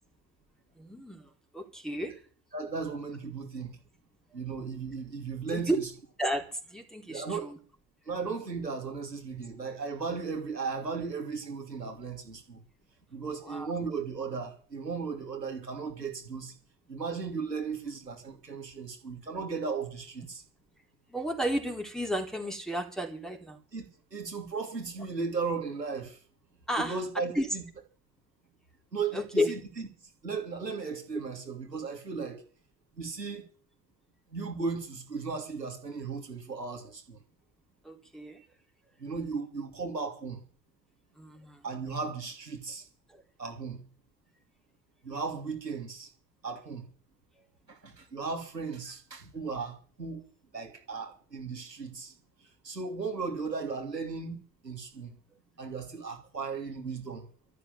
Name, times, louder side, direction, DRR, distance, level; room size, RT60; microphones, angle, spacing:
voice 1, 0.7-2.2 5.5-5.8 6.2-7.6 13.4-13.7 21.1-23.6 26.7-27.0 27.3-27.5 29.1-29.5 37.8-38.5 41.2-41.7 43.1-43.2, equal, ahead, 4.2 m, -32 dB
voice 2, 2.5-3.8 4.3-5.9 7.1-7.5 8.1-12.6 13.1-16.5 16.9-20.4 23.7-26.2 26.8-27.6 28.9-29.9 30.2-32.4 33.0-33.4 34.3-37.2 39.0-40.4 41.6-42.8 43.4-43.8 45.0-46.1 46.4-46.8 47.7-50.2 50.5-52.1 52.6-55.2 55.6-57.3, right 5 dB, 90° right, 3.0 m, -36 dB
13.0 x 12.5 x 7.3 m
figure-of-eight pair, 60°, 48 cm